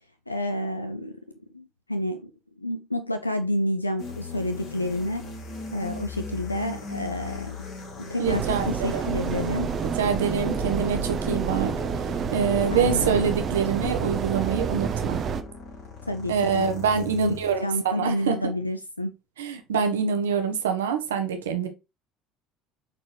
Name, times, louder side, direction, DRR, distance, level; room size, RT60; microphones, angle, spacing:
voice 1, 0.3-1.2 1.5-2.3 2.6-5.3 5.7-7.6 8.1-9.7 12.7-13.3 16.1-16.7 17.0-19.1, left 1 dB, 90° left, 0.4 m, -29 dB
sound 1, 4.0-17.6, left 2 dB, 50° left, 2.9 m, -39 dB
sound 2, 8.2-15.4, right 6 dB, 40° right, 0.7 m, -29 dB
voice 2, 8.2-9.1 10.0-11.7 12.3-15.2 16.3-17.6 17.8-18.5 19.4-21.7, right 6 dB, 75° right, 1.2 m, -25 dB
7.5 x 4.2 x 3.1 m
figure-of-eight pair, 60°, 0 cm